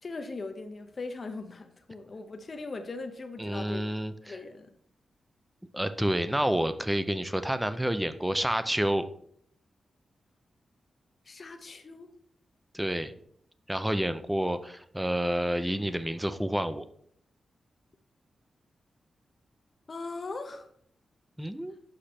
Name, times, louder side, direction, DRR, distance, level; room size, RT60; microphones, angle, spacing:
voice 1, 0.0-3.9 4.2-4.7 11.3-12.1 19.9-20.7, left 3 dB, 45° left, 6 dB, 0.6 m, -39 dB
voice 2, 3.4-4.4 5.7-9.0 12.7-13.1 13.7-16.9 21.4-21.7, right 1 dB, 10° right, 11 dB, 0.5 m, -29 dB
5.7 x 5.0 x 4.3 m, 0.66 s
cardioid pair, 75°, 0 cm